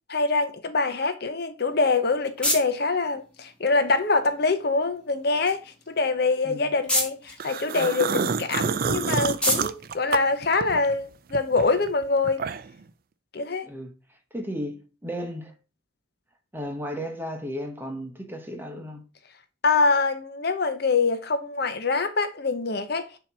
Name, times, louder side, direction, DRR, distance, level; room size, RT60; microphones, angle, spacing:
voice 1, 0.1-12.4 13.3-13.7 19.6-23.1, left 3 dB, 55° left, 0.7 m, -24 dB
sound 1, 1.6-11.0, left 1 dB, 5° left, 1.5 m, -34 dB
voice 2, 6.4-6.8 13.6-15.5 16.5-19.0, equal, 10° right, 1.0 m, -35 dB
sound 2, 7.4-11.0 11.3-12.8, right 5 dB, 50° right, 0.4 m, -28 dB
7.1 x 2.9 x 5.9 m
head